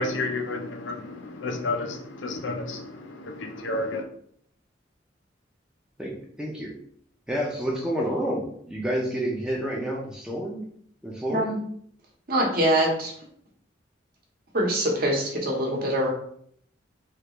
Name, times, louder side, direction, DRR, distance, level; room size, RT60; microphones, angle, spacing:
voice 1, 0.0-4.0, left 2 dB, 85° left, 0.5 m, -31 dB
voice 2, 6.0-6.7 7.3-10.6 11.0-11.5, equal, 5° right, 0.5 m, -29 dB
voice 3, 12.3-13.1 14.5-16.1, right 1 dB, 50° right, 0.9 m, -24 dB
3.2 x 2.4 x 3.0 m
head